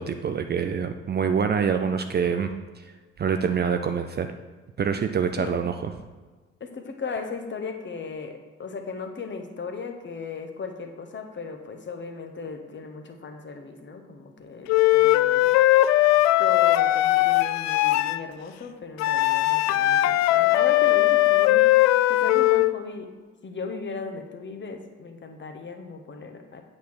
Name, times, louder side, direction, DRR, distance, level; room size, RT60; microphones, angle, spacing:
voice 1, 0.0-2.5 3.2-4.3 4.8-5.9, right 6 dB, 30° right, 7 dB, 0.5 m, -25 dB
voice 2, 6.6-15.5 16.4-23.1 23.4-26.6, left 4 dB, 30° left, 5 dB, 1.3 m, -36 dB
Wind instrument woodwind instrument, 14.7-18.2 19.0-22.7, left 15 dB, 50° left, 0.4 m, -19 dB
8.4 x 4.2 x 6.3 m, 1.4 s
figure-of-eight pair, 50°, 35 cm